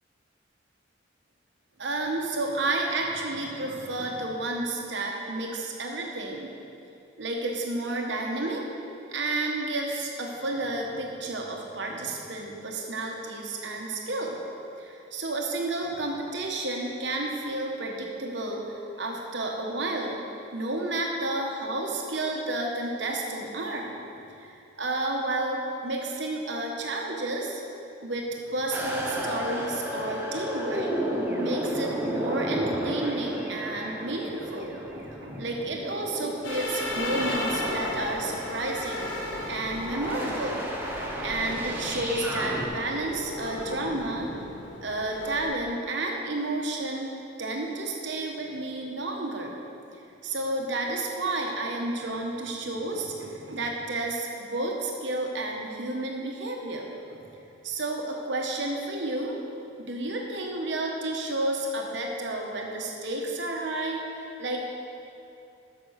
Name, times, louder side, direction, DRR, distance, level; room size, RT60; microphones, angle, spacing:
voice 1, 1.8-6.5 7.2-8.6 9.1-14.4 14.8-18.7 19.0-20.2 20.5-24.0 24.4-27.6 28.0-30.9 31.4-39.1 39.5-44.3 44.8-47.1 47.4-49.6 50.2-57.3 57.6-59.4 59.8-64.6, right 2 dB, 60° right, 0 dB, 1.2 m, -31 dB
sound 1, 28.7-42.7, equal, 10° right, 0.8 m, -33 dB
sound 2, 36.4-45.5, left 1 dB, 70° left, 1.1 m, -35 dB
7.9 x 6.1 x 6.4 m, 2.6 s
head